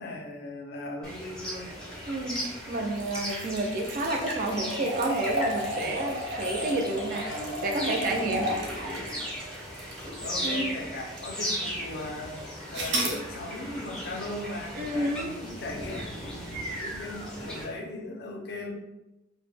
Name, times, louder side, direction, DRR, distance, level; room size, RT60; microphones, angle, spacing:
voice 1, 0.0-1.8 10.2-18.7, left 2 dB, 60° left, 1 dB, 0.5 m, -38 dB
sound 1, 1.0-17.6, equal, 5° left, 0.5 m, -37 dB
voice 2, 2.1-8.6 10.4-10.7 14.7-15.3, right 2 dB, 50° right, 2 dB, 0.4 m, -30 dB
sound 2, 2.2-10.7 11.2-11.3 12.7-13.2, equal, 85° right, 0.6 m, -34 dB
2.2 x 2.0 x 3.2 m, 0.97 s
head